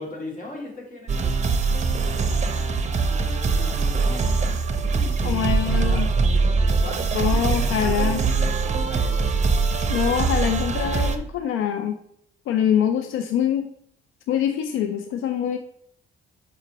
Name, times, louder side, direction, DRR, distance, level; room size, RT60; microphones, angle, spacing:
voice 1, 0.0-2.6 3.1-9.2, left 2 dB, 40° left, -1 dB, 2.5 m, -39 dB
sound 1, 1.1-11.2, right 4 dB, 35° right, 0.7 m, -22 dB
voice 2, 5.2-6.1 7.1-8.2 9.9-12.0 12.5-13.7 14.3-15.6, left 9 dB, 90° left, 7 dB, 0.5 m, -24 dB
6.7 x 4.9 x 2.9 m, 0.71 s
cardioid pair, 90°, 20 cm